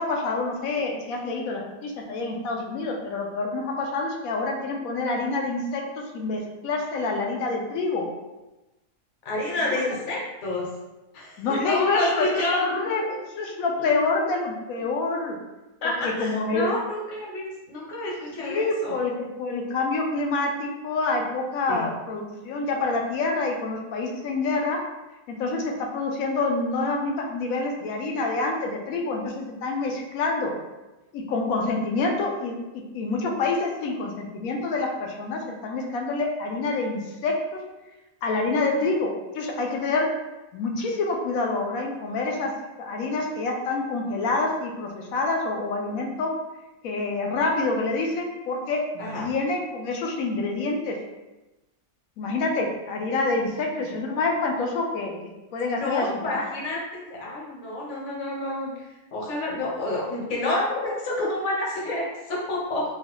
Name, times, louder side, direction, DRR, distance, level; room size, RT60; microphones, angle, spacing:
voice 1, 0.0-8.1 11.4-15.4 16.0-16.7 18.4-24.8 25.3-30.5 31.1-37.6 38.2-40.1 40.5-42.5 42.8-46.3 46.8-51.0 52.2-55.2 55.5-56.4, left 3 dB, 75° left, 1 dB, 1.0 m, -27 dB
voice 2, 9.2-10.7 11.1-13.0 13.9-14.0 15.8-19.0 21.7-21.9 49.0-49.3 53.4-53.6 55.8-58.9 59.1-62.8, left 2 dB, 45° left, -4 dB, 0.8 m, -29 dB
3.8 x 2.2 x 3.0 m, 1.0 s
omnidirectional pair, 1.5 m